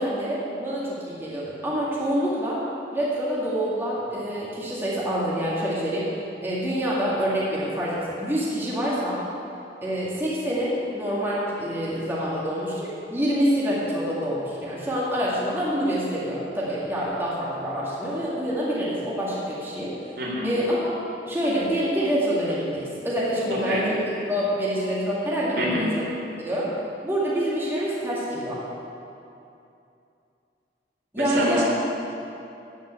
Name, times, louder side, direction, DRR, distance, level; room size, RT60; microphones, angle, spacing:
voice 1, 0.0-2.6 2.9-6.1 6.4-9.2 9.8-19.9 20.4-20.9 21.3-26.0 26.4-26.7 27.0-28.6 31.1-31.6, equal, 15° right, -7 dB, 2.0 m, -26 dB
voice 2, 20.2-20.5 23.5-23.8 25.6-25.9 31.2-31.6, equal, 65° right, -4 dB, 3.3 m, -26 dB
13.5 x 5.5 x 8.8 m, 2.7 s
head